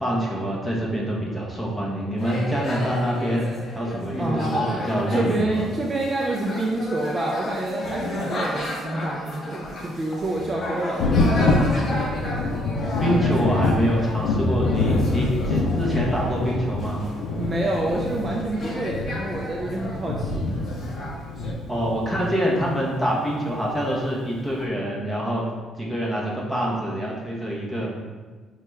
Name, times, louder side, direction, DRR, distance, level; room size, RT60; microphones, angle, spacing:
voice 1, 0.0-5.6 13.0-17.0 21.7-25.5 25.8-28.0, equal, 5° left, -4 dB, 0.9 m, -25 dB
sound 1, 2.2-21.5, left 1 dB, 35° left, 0.8 m, -33 dB
voice 2, 4.2-4.7 5.1-12.0 17.4-20.5, right 2 dB, 30° right, -2 dB, 0.4 m, -28 dB
Thunder, 11.0-22.4 23.7-23.8 24.3-24.4, left 2 dB, 85° left, 0.5 m, -25 dB
5.5 x 2.3 x 3.2 m, 1.4 s
cardioid pair, 130°, 0 cm